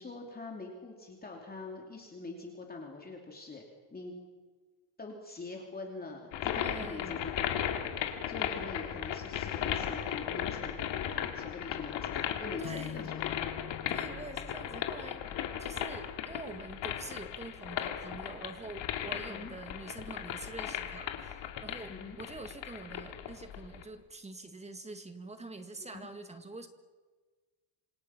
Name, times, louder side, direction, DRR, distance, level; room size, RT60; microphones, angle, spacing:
voice 1, 0.0-3.6 3.9-4.1 5.0-13.2 19.1-19.5 21.9-22.2 25.8-26.1, left 3 dB, 20° left, 1 dB, 3.0 m, -44 dB
sound 1, 6.3-23.8, left 10 dB, 65° left, 2.5 m, -36 dB
voice 2, 6.6-7.3 12.6-13.1 13.9-15.3 15.6-26.7, right 2 dB, 15° right, 7 dB, 1.8 m, -45 dB
Acoustic guitar / Strum, 12.6-15.9, left 10 dB, 50° left, 0.8 m, -46 dB
27.0 x 27.0 x 5.9 m, 1.4 s
cardioid pair, 175°, 47 cm